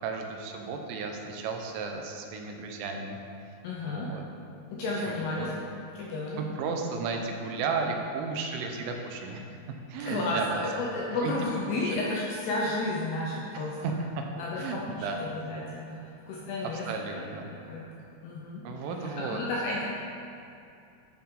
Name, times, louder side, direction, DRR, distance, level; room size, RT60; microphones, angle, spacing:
voice 1, 0.0-3.2 3.8-4.2 4.8-5.5 6.4-9.4 9.9-10.6 11.1-11.3 11.8-12.0 13.8-13.9 14.6-15.2 16.6-17.5 18.6-19.4, right 4 dB, 85° right, 3 dB, 3.3 m, -34 dB
voice 2, 3.6-4.2 4.7-5.5 5.9-6.4 10.0-13.8 14.4-17.2 17.5-17.9 18.2-18.7 19.0-19.8, left 2 dB, 80° left, -3 dB, 2.4 m, -32 dB
10.5 x 5.7 x 3.7 m, 2.6 s
omnidirectional pair, 5.6 m